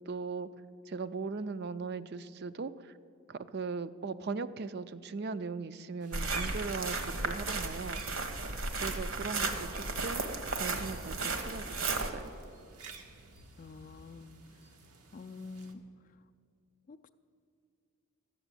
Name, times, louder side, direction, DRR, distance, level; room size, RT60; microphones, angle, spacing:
voice 1, 0.1-0.5 0.9-2.9 3.3-8.0 8.7-12.3, right 4 dB, 45° right, 14 dB, 0.4 m, -39 dB
sound 1, 6.0-15.7, right 4 dB, 90° right, 1.2 m, -51 dB
sound 2, 6.1-12.1, right 3 dB, 60° right, 1.1 m, -34 dB
voice 2, 13.6-14.3 15.1-15.8 16.9-17.1, left 4 dB, 35° left, 8 dB, 0.3 m, -46 dB
13.5 x 7.0 x 8.9 m, 2.5 s
head